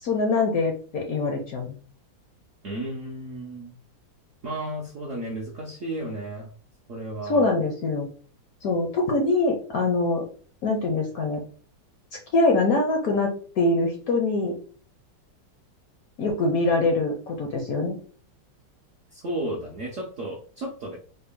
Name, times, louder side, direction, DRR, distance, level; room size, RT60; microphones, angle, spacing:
voice 1, 0.0-1.7 7.3-8.1 8.6-10.2 10.6-11.4 12.3-14.5 16.2-18.0, left 2 dB, 65° left, 2 dB, 0.9 m, -23 dB
voice 2, 2.6-3.8 4.4-6.5 6.9-7.5 19.1-21.0, right 1 dB, 65° right, -2 dB, 0.7 m, -33 dB
4.2 x 2.1 x 3.5 m, 0.43 s
omnidirectional pair, 2.1 m